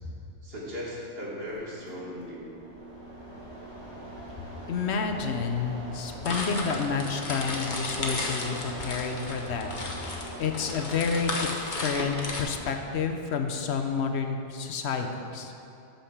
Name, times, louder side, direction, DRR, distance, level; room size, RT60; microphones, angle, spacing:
voice 1, 0.4-2.4, equal, 55° right, -5 dB, 2.2 m, -37 dB
Mechanisms, 1.5-13.8, right 1 dB, 80° right, 2.8 m, -43 dB
voice 2, 4.7-15.5, left 5 dB, 70° left, 5 dB, 0.9 m, -30 dB
sound 1, 6.2-12.4, left 2 dB, 45° left, 1.1 m, -34 dB
8.5 x 5.8 x 7.1 m, 2.7 s
omnidirectional pair, 1.2 m